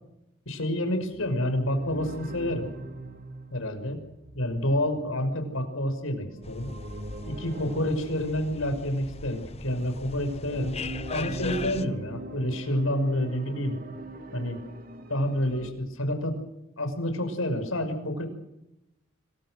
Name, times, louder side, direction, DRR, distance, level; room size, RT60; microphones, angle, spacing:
voice 1, 0.5-2.7 3.5-4.0 4.3-6.7 7.3-10.8 11.1-13.8 14.3-14.6 15.1-16.4 16.8-18.3, left 1 dB, 85° left, 7 dB, 5.9 m, -28 dB
sound 1, 0.9-9.4 10.0-15.7, right 1 dB, 45° right, 2.7 m, -41 dB
sound 2, 6.4-11.8, left 4 dB, 30° left, 1.0 m, -39 dB
26.0 x 24.0 x 6.5 m, 0.88 s
head